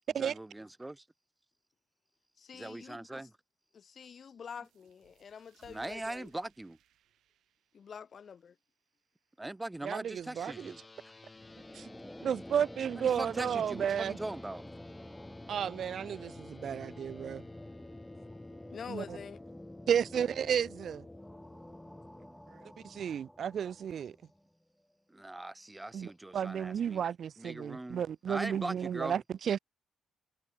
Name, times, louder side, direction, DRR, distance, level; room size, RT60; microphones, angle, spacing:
voice 1, 0.2-1.0 2.5-3.3 5.7-6.8 9.4-10.8 12.9-14.6 16.5-16.6 25.1-27.0 27.4-29.2, right 2 dB, 10° right, 0.5 m, -41 dB
voice 2, 2.4-3.3 3.7-6.3 7.7-8.5 18.7-19.4, left 7 dB, 50° left, 0.4 m, -47 dB
sound 1, 4.6-9.9, right 13 dB, 80° right, 6.7 m, -70 dB
voice 3, 9.8-10.7 11.7-11.9 12.2-14.2 15.5-17.4 18.9-19.2 19.9-21.0 22.5-24.2 25.9-29.6, right 8 dB, 60° right, 0.6 m, -33 dB
sound 2, 10.4-22.3, left 3 dB, 20° left, 1.5 m, -53 dB
sound 3, 11.4-24.5, equal, 5° left, 1.2 m, -49 dB
cardioid pair, 90°, 0 cm